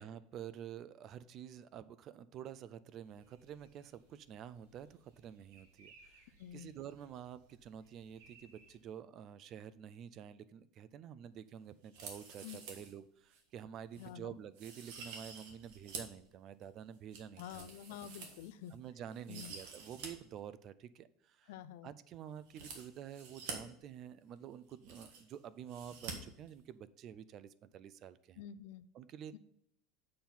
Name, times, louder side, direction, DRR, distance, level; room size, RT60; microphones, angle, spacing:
voice 1, 0.0-17.7 18.7-21.5 21.8-28.4 28.9-29.4, right 9 dB, 30° right, 16 dB, 0.3 m, -49 dB
sound 1, 3.0-8.8, right 3 dB, 85° right, 2.0 m, -65 dB
voice 2, 6.4-6.7 12.4-12.6 14.0-14.4 17.4-18.7 19.3-19.5 21.5-21.9 28.4-28.9 29.3-29.4, left 10 dB, 70° left, 15 dB, 0.4 m, -48 dB
sound 2, 11.8-12.9 13.3-13.4 13.9-14.1 14.5-16.2 16.6-18.7 19.1-20.1 20.4-20.5 22.4-23.5 24.4-24.5 24.6-25.4 25.7-26.1 26.4-26.5, right 5 dB, 65° right, 1.5 m, -48 dB
7.5 x 4.4 x 5.4 m, 0.74 s
supercardioid pair, 175°, 0 cm